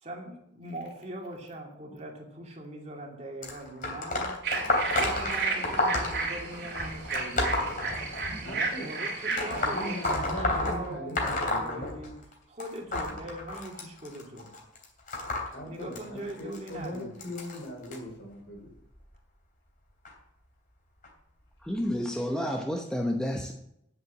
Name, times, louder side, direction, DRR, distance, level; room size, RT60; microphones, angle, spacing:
voice 1, 0.0-4.4 4.8-14.5 15.6-17.1, right 1 dB, 40° right, 0 dB, 2.5 m, -41 dB
sound 1, 3.4-8.5 9.3-12.3 12.6-18.0 18.7-19.0 20.0-20.1 21.0-21.1 21.8-21.9, left 2 dB, 50° left, 3.0 m, -31 dB
sound 2, 4.4-10.1, right 4 dB, 60° right, 3.2 m, -33 dB
voice 2, 8.4-8.9 9.5-11.9 15.5-18.7, left 1 dB, 75° left, 1 dB, 4.1 m, -40 dB
voice 3, 21.6-23.5, equal, 5° left, 2 dB, 0.9 m, -30 dB
9.6 x 7.8 x 7.6 m, 0.77 s
head